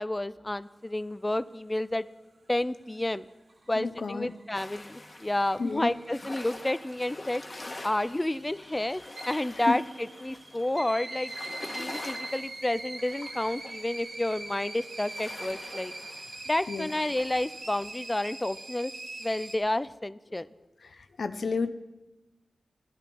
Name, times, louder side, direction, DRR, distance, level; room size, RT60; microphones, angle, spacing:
voice 1, 0.0-2.1 2.5-3.2 3.7-7.4 7.8-11.3 11.8-15.9 16.5-18.9 19.2-20.5, left 1 dB, 20° left, 15 dB, 0.4 m, -30 dB
sound 1, 3.3-19.6, right 2 dB, 70° right, 1.8 m, -43 dB
voice 2, 3.8-4.3 5.6-5.9 9.7-9.8 16.7-16.9 21.2-21.7, left 4 dB, 75° left, 10 dB, 0.6 m, -30 dB
sound 2, 4.5-17.9, left 2 dB, 40° left, 1.5 m, -46 dB
14.5 x 10.5 x 5.3 m, 1.1 s
cardioid pair, 60°, 0 cm